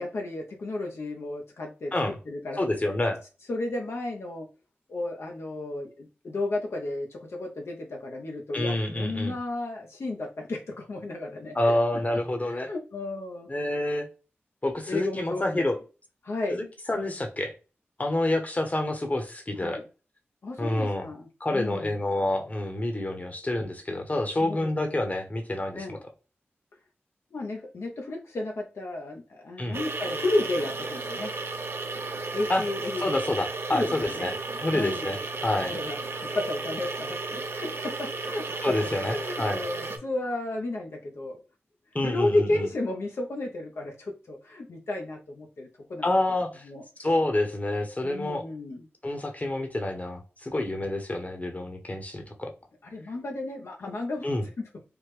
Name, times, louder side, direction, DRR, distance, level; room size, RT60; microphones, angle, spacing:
voice 1, 0.0-1.9 2.3-2.7 3.5-4.5 4.9-11.7 12.1-12.2 12.5-13.5 14.9-15.6 16.2-16.6 19.6-19.8 20.4-22.0 24.4-25.0 25.7-26.0 27.3-31.3 32.3-33.2 33.7-34.3 34.7-35.2 35.7-41.4 42.0-46.1 46.6-47.1 48.0-48.8 52.8-54.3 54.6-54.7, left 2 dB, 75° left, 1 dB, 0.7 m, -33 dB
voice 2, 2.6-3.2 8.5-9.3 11.5-12.7 13.5-14.1 14.6-15.8 16.5-17.5 18.0-19.8 20.6-21.1 21.4-26.0 29.6-29.8 32.5-32.6 33.0-34.3 34.6-35.7 38.6-39.6 41.9-42.7 46.0-46.6 47.0-48.4 49.0-52.5 54.2-54.4, left 1 dB, 35° left, 4 dB, 0.9 m, -28 dB
sound 1, 29.7-40.0, right 3 dB, 60° right, 0.5 m, -34 dB
3.4 x 2.1 x 3.1 m, 0.33 s
cardioid pair, 40°, 5 cm